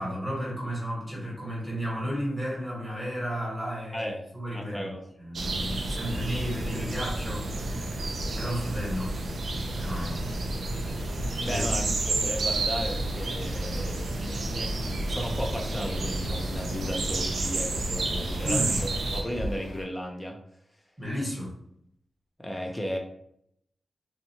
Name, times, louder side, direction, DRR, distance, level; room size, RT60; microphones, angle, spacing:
voice 1, 0.0-4.1 4.3-4.9 5.2-9.2 9.8-10.2 11.5-11.7 18.4-18.8 21.0-21.5, equal, 5° right, -5 dB, 1.2 m, -33 dB
voice 2, 3.9-4.3 4.5-5.0 11.4-20.4 22.4-23.0, equal, 10° left, 1 dB, 0.5 m, -35 dB
sound 1, 5.3-19.2, right 2 dB, 75° right, 0.4 m, -30 dB
sound 2, 9.6-19.9, left 1 dB, 80° left, 0.7 m, -41 dB
2.6 x 2.3 x 2.8 m, 0.71 s
wide cardioid pair, 90°, 0 cm